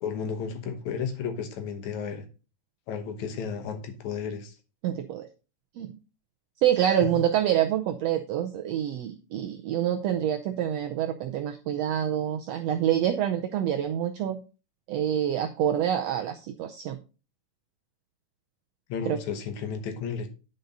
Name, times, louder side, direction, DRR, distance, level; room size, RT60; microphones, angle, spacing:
voice 1, 0.0-2.2 2.9-4.5 6.8-7.0 18.9-20.3, left 6 dB, 70° left, 7 dB, 2.3 m, -33 dB
voice 2, 4.8-5.3 5.8-6.0 6.6-14.4 14.9-17.0 19.1-19.2, right 10 dB, 80° right, 5 dB, 1.5 m, -26 dB
9.3 x 5.3 x 4.0 m, 0.33 s
omnidirectional pair, 3.6 m